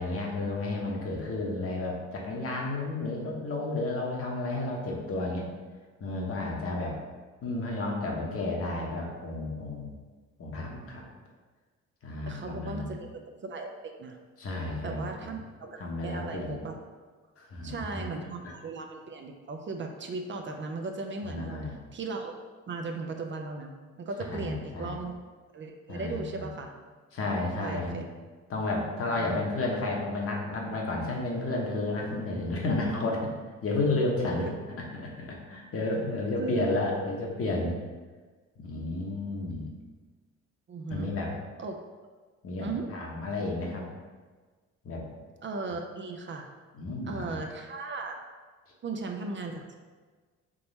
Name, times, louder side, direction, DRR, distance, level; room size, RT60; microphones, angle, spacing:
voice 1, 0.0-5.4 6.0-7.0 7.4-9.9 10.4-11.0 12.0-12.9 14.4-15.3 15.8-16.6 17.4-18.0 18.4-18.5 21.2-21.7 24.3-25.0 25.9-26.4 27.1-28.0 28.5-33.2 33.6-34.4 34.9-37.8 38.6-39.7 40.9-41.3 42.4-43.9 44.8-45.0 46.7-47.4, left 2 dB, 50° left, -1 dB, 1.0 m, -32 dB
voice 2, 12.3-14.2 14.8-16.7 17.6-21.6 21.9-22.3 22.7-25.1 25.5-26.7 27.6-28.1 29.2-29.4 34.4-34.6 36.3-36.7 40.7-41.1 41.6-41.8 42.6-42.9 45.4-46.5 47.1-48.1 48.8-49.7, right 3 dB, 40° right, 4 dB, 0.4 m, -37 dB
3.7 x 2.9 x 4.0 m, 1.4 s
cardioid pair, 90°, 30 cm